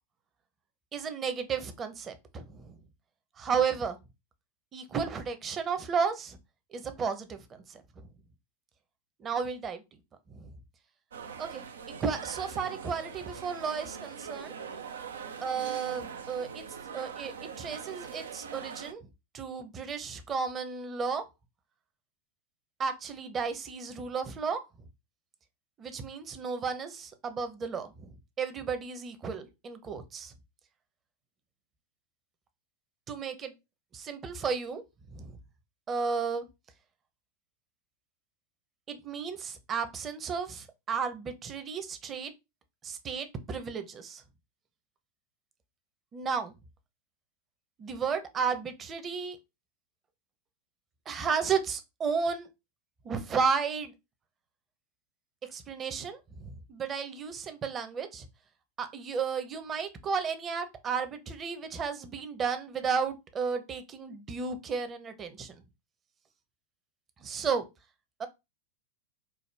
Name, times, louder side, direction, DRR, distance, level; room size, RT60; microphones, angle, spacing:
voice 1, 0.9-2.8 3.4-4.0 4.7-6.4 6.7-8.1 9.2-9.8 10.3-10.5 11.4-14.5 15.4-16.6 16.9-19.1 19.3-21.2 22.8-24.6 25.8-30.3 33.1-33.5 33.9-34.8 35.1-35.4 35.9-36.5 38.9-42.3 42.8-44.2 46.1-46.5 47.8-49.4 51.1-52.5 53.0-53.9 55.4-58.3 58.8-65.5 67.2-67.6 68.2-68.3, right 6 dB, 30° right, 0.8 m, -33 dB
sound 1, 11.1-18.9, right 6 dB, 75° right, 0.5 m, -42 dB
4.8 x 2.2 x 3.4 m
figure-of-eight pair, 90°, 0 cm